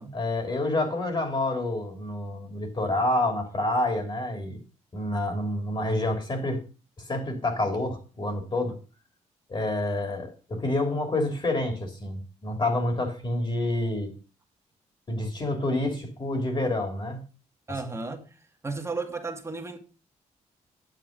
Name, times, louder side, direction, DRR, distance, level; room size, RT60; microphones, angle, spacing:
voice 1, 0.1-4.6 4.9-6.6 7.1-8.8 9.5-14.1 15.1-17.2, left 1 dB, 40° left, 3.1 m, -28 dB
voice 2, 17.7-19.8, right 3 dB, 20° right, 1.9 m, -34 dB
9.3 x 7.5 x 5.2 m
cardioid pair, 100°, 13 cm